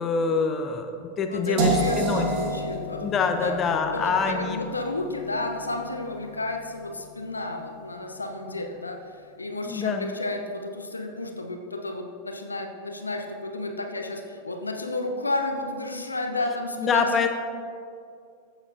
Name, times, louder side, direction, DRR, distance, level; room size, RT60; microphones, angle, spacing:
voice 1, 0.0-2.5 3.0-4.6 9.7-10.1 16.8-17.3, left 5 dB, 25° left, 5 dB, 0.6 m, -25 dB
voice 2, 1.3-3.5 3.9-17.3, left 2 dB, 80° left, 4 dB, 0.7 m, -32 dB
sound 1, 1.6-7.5, right 2 dB, 45° right, 1.0 m, -31 dB
15.0 x 7.0 x 2.7 m, 2.4 s
figure-of-eight pair, 90°, 0 cm